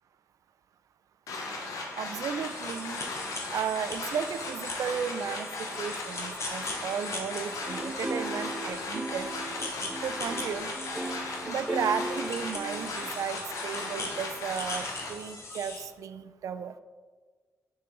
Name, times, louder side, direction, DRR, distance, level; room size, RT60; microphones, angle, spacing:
sound 1, 1.3-15.1, left 2 dB, 85° left, 1.0 m, -37 dB
voice 1, 2.0-3.0 3.5-5.5 5.8-9.3 10.0-10.8 11.4-16.7, right 7 dB, 80° right, 12 dB, 0.3 m, -34 dB
sound 2, 2.4-15.9, left 2 dB, 55° left, 1.3 m, -41 dB
sound 3, 7.7-13.4, right 1 dB, 10° right, 0.6 m, -37 dB
6.6 x 4.8 x 3.8 m, 1.5 s
cardioid pair, 55°, 6 cm